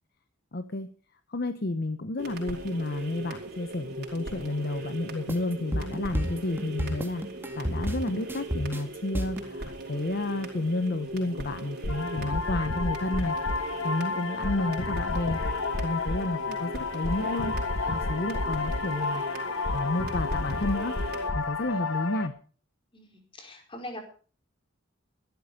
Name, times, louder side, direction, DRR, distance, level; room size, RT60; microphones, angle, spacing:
voice 1, 0.5-0.9 1.3-7.2 7.6-15.4 15.8-17.5 17.9-22.3, left 2 dB, 50° left, 10 dB, 0.9 m, -31 dB
sound 1, 2.2-21.3, right 2 dB, 55° right, 5.4 m, -39 dB
sound 2, 5.3-9.5, equal, 10° right, 2.2 m, -31 dB
sound 3, 11.8-22.3, left 3 dB, 90° left, 1.4 m, -31 dB
voice 2, 22.9-24.0, left 1 dB, 25° left, 3 dB, 4.7 m, -42 dB
16.0 x 13.0 x 5.1 m, 0.41 s
head